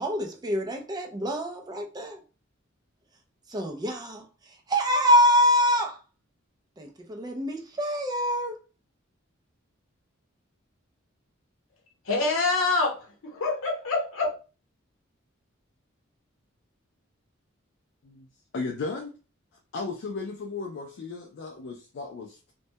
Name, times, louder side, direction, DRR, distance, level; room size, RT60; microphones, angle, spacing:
voice 1, 0.0-2.2 3.5-4.2 4.7-6.0 6.8-8.6, equal, 20° right, 0.4 m, -25 dB
voice 2, 12.1-14.3, left 3 dB, 85° left, 0.8 m, -26 dB
voice 3, 18.5-19.1 19.7-22.5, left 3 dB, 60° left, 0.3 m, -35 dB
2.1 x 2.1 x 2.7 m
head